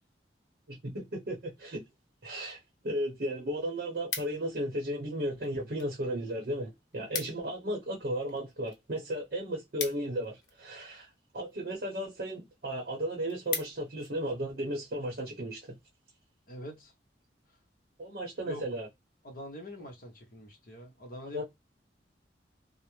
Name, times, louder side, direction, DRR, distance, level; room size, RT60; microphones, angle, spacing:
voice 1, 0.7-1.8 2.2-2.6 2.8-11.1 11.3-15.6 18.0-18.9 21.3-21.4, equal, 55° right, 0.7 m, -35 dB
sound 1, 2.9-3.0 3.3-4.7 5.4-5.9 6.2-6.3 6.6-6.7 6.9-7.6 7.9-10.8 11.5-11.8 12.3-12.4 12.8-12.9 13.1-14.1 14.6-14.8, left 6 dB, 85° left, 0.6 m, -40 dB
voice 2, 16.5-16.9 18.4-18.6 19.2-21.4, equal, 50° left, 0.8 m, -44 dB
2.4 x 2.0 x 2.9 m
head